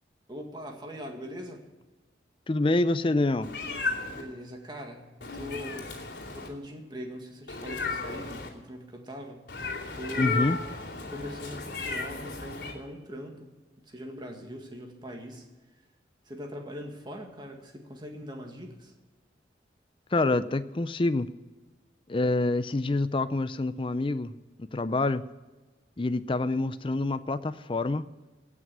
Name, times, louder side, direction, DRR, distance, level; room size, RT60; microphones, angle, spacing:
voice 1, 0.3-1.7 4.1-6.0 6.3-9.5 9.9-10.6 11.1-13.5 13.8-15.9 16.2-18.9, left 1 dB, 25° right, 3 dB, 1.9 m, -41 dB
voice 2, 2.5-3.5 10.2-10.6 20.1-21.3 22.1-24.3 24.7-25.2 26.0-28.1, left 2 dB, 30° left, 14 dB, 0.5 m, -26 dB
Meow, 3.4-4.2 5.2-6.5 7.5-8.5 9.5-12.7, left 4 dB, 80° left, 2.6 m, -34 dB
16.5 x 6.2 x 9.8 m, 1.2 s
head